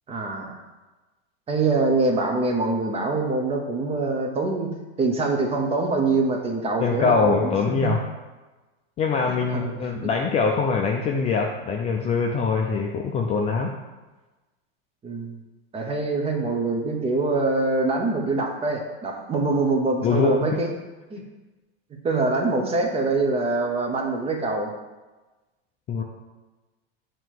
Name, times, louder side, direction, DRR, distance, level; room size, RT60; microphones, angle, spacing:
voice 1, 0.1-0.6 1.5-7.5 7.8-8.0 9.3-9.7 15.0-15.4 15.7-20.7 21.1-21.2 21.9-24.7, right 3 dB, 20° right, 2 dB, 0.8 m, -24 dB
voice 2, 6.8-8.0 9.0-13.7 20.0-20.6 25.9-26.0, left 4 dB, 20° left, 0 dB, 0.4 m, -23 dB
7.0 x 3.0 x 4.5 m, 1.2 s
supercardioid pair, 130°, 31 cm